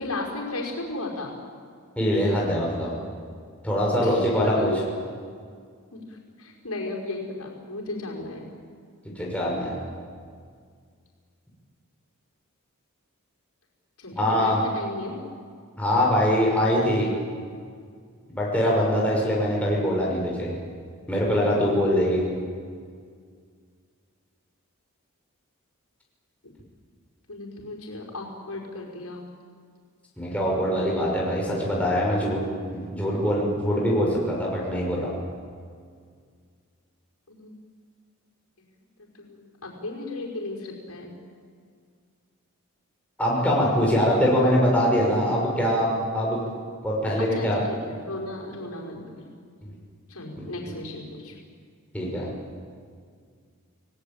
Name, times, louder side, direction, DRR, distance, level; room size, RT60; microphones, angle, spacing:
voice 1, 0.0-1.4 4.0-4.8 5.9-8.5 14.0-15.2 26.4-26.5 27.3-29.3 37.3-37.5 38.6-38.7 39.1-41.1 47.2-49.3 50.1-51.4, left 2 dB, 85° left, 0 dB, 5.4 m, -35 dB
voice 2, 2.0-2.9 3.6-4.7 9.2-9.8 14.2-14.6 15.8-17.1 18.3-20.5 21.1-22.2 30.2-32.4 32.7-35.1 43.2-46.4 46.8-47.6 50.7-50.8 51.9-52.3, equal, 5° left, -4 dB, 6.0 m, -23 dB
29.5 x 18.5 x 9.0 m, 2.1 s
head